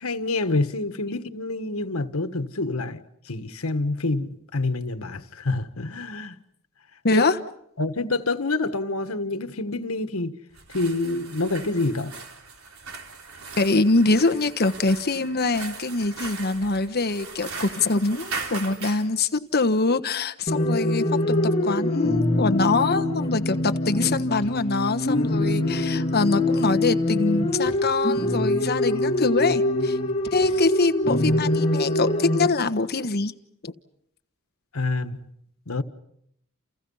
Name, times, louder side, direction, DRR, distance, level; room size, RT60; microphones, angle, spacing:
voice 1, 0.0-6.3 7.1-7.3 7.8-10.4 10.7-12.1 34.7-35.2 35.7-35.8, left 2 dB, 85° left, 1.6 m, -27 dB
voice 2, 7.0-7.4 13.6-30.0 30.3-33.3 33.6-33.7, left 3 dB, 50° left, 1.3 m, -24 dB
sound 1, 10.5-19.1, right 4 dB, 80° right, 3.9 m, -39 dB
sound 2, 20.5-32.5, left 1 dB, 30° left, 3.0 m, -24 dB
30.0 x 30.0 x 5.6 m
head